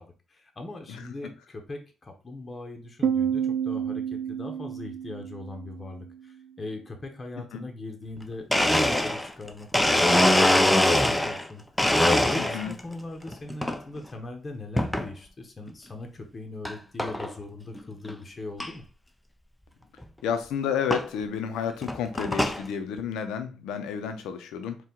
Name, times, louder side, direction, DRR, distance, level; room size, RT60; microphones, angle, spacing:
voice 1, 0.0-11.6 12.2-18.8, left 2 dB, 30° left, 3 dB, 0.9 m, -40 dB
Piano, 3.0-6.5, right 8 dB, 65° right, 0.5 m, -30 dB
Domestic sounds home sounds, 8.2-8.3 8.5-11.4 11.8-12.8 13.3-13.8 14.8-15.1 15.7-15.8 16.6-16.7 17.0-17.3 17.8-17.9 18.0-18.1 18.6-18.7 20.0-20.1 20.9-21.1 21.7-22.6, left 1 dB, 5° left, 0.5 m, -22 dB
voice 2, 12.4-12.7 20.2-24.8, left 7 dB, 90° left, 8 dB, 0.7 m, -31 dB
4.4 x 2.4 x 3.7 m, 0.34 s
cardioid pair, 90°, 0 cm